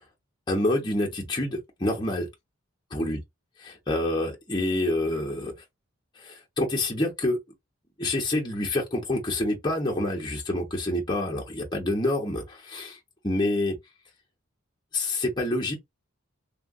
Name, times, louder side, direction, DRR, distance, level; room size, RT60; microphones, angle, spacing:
voice 1, 0.5-2.3 2.9-3.2 3.6-5.5 6.2-7.4 8.0-13.0 13.2-13.8 14.9-15.7, left 1 dB, 20° left, 0.8 m, -27 dB
3.5 x 2.4 x 2.3 m
head